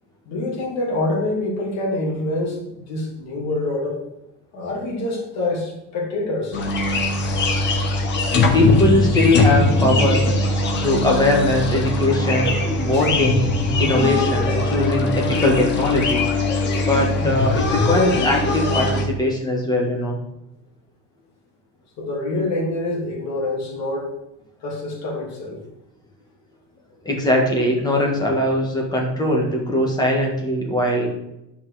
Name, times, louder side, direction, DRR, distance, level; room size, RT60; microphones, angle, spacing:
voice 1, 0.3-4.0 4.5-6.6 12.9-13.1 22.0-24.1 24.6-25.6, left 2 dB, 45° left, -2 dB, 2.8 m, -26 dB
sound 1, 6.5-19.0, left 2 dB, 30° left, 1.4 m, -21 dB
voice 2, 8.5-10.3 10.8-13.5 13.7-16.2 16.8-20.2 27.0-31.1, left 1 dB, 10° left, -1 dB, 1.7 m, -20 dB
10.5 x 5.7 x 5.0 m, 0.88 s
cardioid pair, 175°, 36 cm